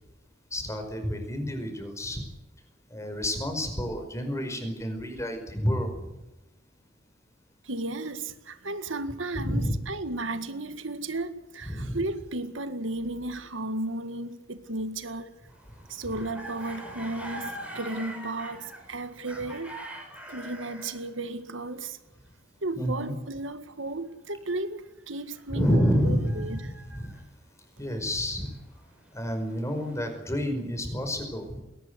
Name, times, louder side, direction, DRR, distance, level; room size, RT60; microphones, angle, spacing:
voice 1, 0.5-2.2 2.9-6.2 9.3-9.8 11.6-12.0 22.8-23.1 25.5-27.1 27.8-28.5 29.1-31.6, equal, 15° left, 5.2 m, -29 dB
voice 2, 7.6-15.3 15.9-19.7 20.3-22.0 22.6-26.6, right 2 dB, 85° right, 1.8 m, -34 dB
sound 1, 15.5-21.1 25.3-27.3 28.1-30.2, right 1 dB, 5° right, 5.8 m, -43 dB
21.5 x 19.0 x 8.1 m
head